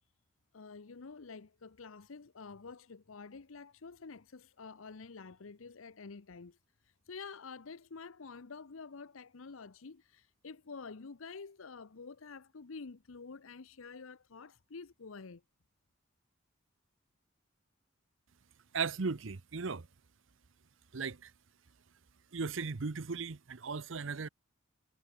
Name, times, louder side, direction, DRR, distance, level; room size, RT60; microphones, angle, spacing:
voice 1, 0.5-15.4, left 4 dB, 90° left, 0.8 m, -49 dB
voice 2, 18.7-19.9 20.9-21.3 22.3-24.3, right 5 dB, 75° right, 0.8 m, -37 dB
head